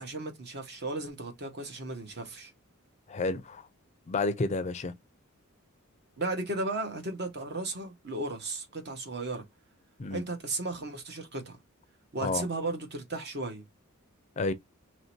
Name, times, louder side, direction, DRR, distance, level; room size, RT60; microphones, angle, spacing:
voice 1, 0.0-2.5 6.2-9.4 10.1-11.6 12.1-13.6, right 2 dB, 50° right, 1.0 m, -35 dB
voice 2, 3.1-3.7 4.1-4.9 10.0-10.2 12.2-12.5 14.4-14.5, left 3 dB, 30° left, 0.4 m, -30 dB
3.0 x 2.7 x 4.4 m
head